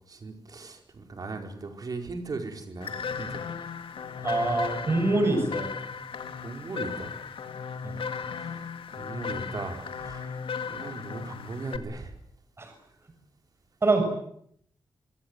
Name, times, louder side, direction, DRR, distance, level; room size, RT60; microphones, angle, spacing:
voice 1, 0.1-3.4 6.4-7.1 8.3-12.2, right 3 dB, 45° right, 5 dB, 4.5 m, -38 dB
sound 1, 2.8-11.8, left 6 dB, 90° left, 2.1 m, -36 dB
voice 2, 4.2-5.7 7.8-7.9 12.6-12.7 13.8-14.0, right 2 dB, 30° right, 6 dB, 6.5 m, -24 dB
24.5 x 24.5 x 8.1 m, 0.70 s
wide cardioid pair, 170°, 9 cm